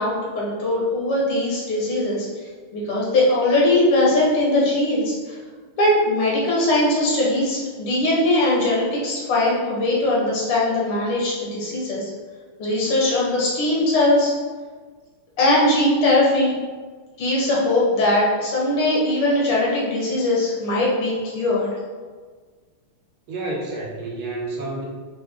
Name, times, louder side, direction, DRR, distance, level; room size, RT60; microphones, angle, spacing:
voice 1, 0.0-2.3 2.7-5.4 5.8-12.1 12.6-14.3 15.4-16.6 17.2-21.7, left 1 dB, 85° left, -5 dB, 2.1 m, -20 dB
voice 2, 23.3-24.9, right 2 dB, 75° right, -3 dB, 1.7 m, -29 dB
6.0 x 2.1 x 3.4 m, 1.5 s
omnidirectional pair, 2.4 m